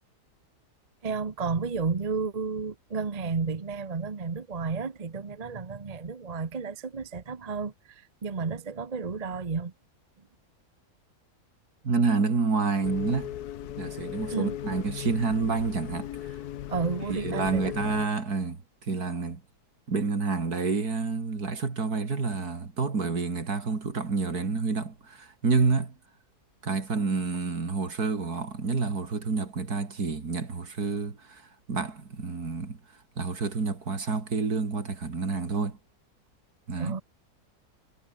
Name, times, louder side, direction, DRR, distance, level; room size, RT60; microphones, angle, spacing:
voice 1, 1.0-9.7 14.3-14.6 16.7-17.7 36.8-37.0, right 5 dB, 30° right, 1.0 m, -32 dB
voice 2, 11.8-13.3 13.8-16.4 17.1-19.4 19.9-25.9 26.6-31.4 31.7-32.8 33.2-35.8 36.7-37.0, right 4 dB, 70° right, 3.3 m, -28 dB
sound 1, 12.8-18.1, left 12 dB, 75° left, 1.3 m, -37 dB
omnidirectional pair, 1.7 m